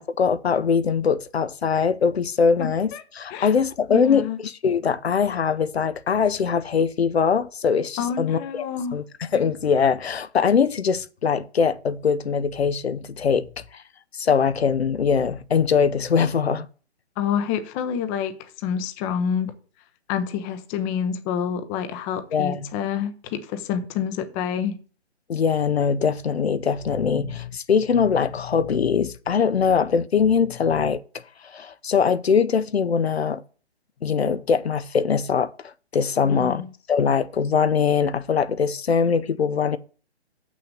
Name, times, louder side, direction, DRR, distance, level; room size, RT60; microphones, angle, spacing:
voice 1, 0.0-2.9 3.2-8.4 8.9-9.0 9.3-13.5 13.7-13.8 14.1-16.7 22.3-22.7 25.3-31.0 31.4-33.4 34.0-35.5 35.9-36.6 36.9-39.8, left 6 dB, 70° left, 0.8 m, -22 dB
voice 2, 2.6-3.0 3.3-3.5 3.9-4.4 8.0-9.0 17.2-19.5 20.1-24.8 36.2-36.7, left 8 dB, 15° left, 0.7 m, -28 dB
6.9 x 6.2 x 7.7 m
figure-of-eight pair, 135°, 33 cm